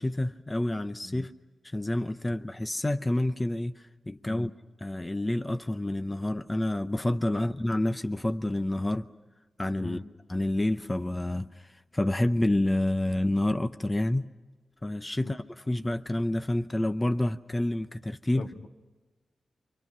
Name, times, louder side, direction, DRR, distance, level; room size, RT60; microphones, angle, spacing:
voice 1, 0.0-1.3 1.6-4.5 4.8-9.1 9.6-10.0 10.3-14.3 14.8-18.5, left 1 dB, 20° left, 0.7 m, -28 dB
voice 2, 18.3-18.7, left 2 dB, 70° left, 1.6 m, -41 dB
28.5 x 25.5 x 6.1 m
cardioid pair, 80°, 0 cm